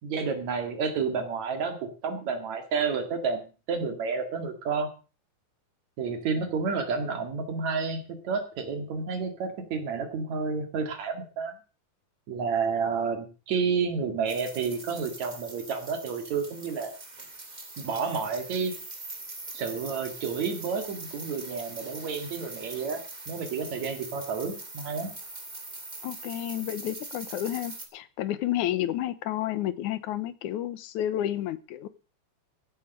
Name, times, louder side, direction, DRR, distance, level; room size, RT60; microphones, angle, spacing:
voice 1, 0.0-4.9 6.0-11.6 12.3-16.9 17.8-18.7 19.5-25.1, right 5 dB, 65° right, 7 dB, 3.4 m, -30 dB
sound 1, 14.3-27.9, right 2 dB, 15° right, 1.8 m, -42 dB
voice 2, 26.0-31.9, left 12 dB, 80° left, 15 dB, 2.3 m, -31 dB
15.5 x 7.7 x 6.5 m, 0.35 s
omnidirectional pair, 3.5 m